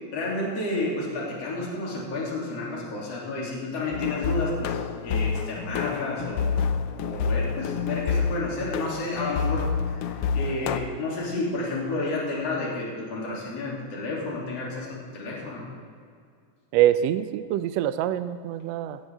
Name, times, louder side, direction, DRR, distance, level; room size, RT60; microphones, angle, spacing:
voice 1, 0.1-6.7 7.0-15.7, left 2 dB, 55° left, -4 dB, 3.9 m, -31 dB
sound 1, 3.9-10.8, left 6 dB, 85° left, 1.3 m, -28 dB
voice 2, 16.7-19.0, right 12 dB, 85° right, 11 dB, 1.5 m, -24 dB
17.0 x 14.5 x 3.6 m, 2.2 s
omnidirectional pair, 3.5 m